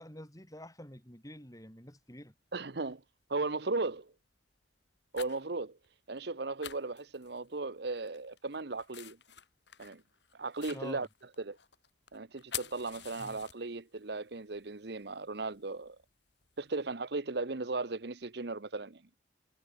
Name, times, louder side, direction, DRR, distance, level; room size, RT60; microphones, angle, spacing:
voice 1, 0.0-2.3 10.7-11.1 13.2-13.4, left 1 dB, 20° left, 6.7 m, -48 dB
sound 1, 2.0-2.1 2.9-3.2 3.7-3.9 4.7-5.5 5.8-5.9 6.1-6.3 6.6-7.6 8.0-14.0 14.3-16.8, left 11 dB, 65° left, 5.2 m, -47 dB
voice 2, 2.5-3.0 3.3-4.1 5.1-5.8 6.1-9.2 9.8-10.0 10.3-11.1 11.4-11.6 12.1-16.0 16.6-19.0, right 3 dB, 60° right, 1.0 m, -36 dB
head